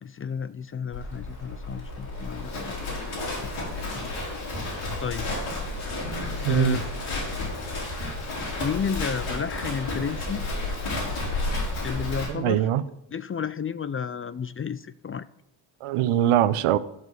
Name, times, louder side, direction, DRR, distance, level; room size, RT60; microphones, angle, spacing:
voice 1, 0.0-3.6 3.9-4.1 5.0-5.3 6.5-6.8 8.6-10.5 11.8-12.7 13.1-15.3, left 7 dB, 30° left, 15 dB, 0.4 m, -32 dB
Livestock farm animals working animals, 0.9-12.3, left 2 dB, 75° left, 4.4 m, -31 dB
voice 2, 6.4-6.8 12.3-12.8 15.8-16.8, right 12 dB, 85° right, 15 dB, 0.7 m, -22 dB
12.0 x 4.7 x 6.5 m, 0.85 s
cardioid pair, 65°, 50 cm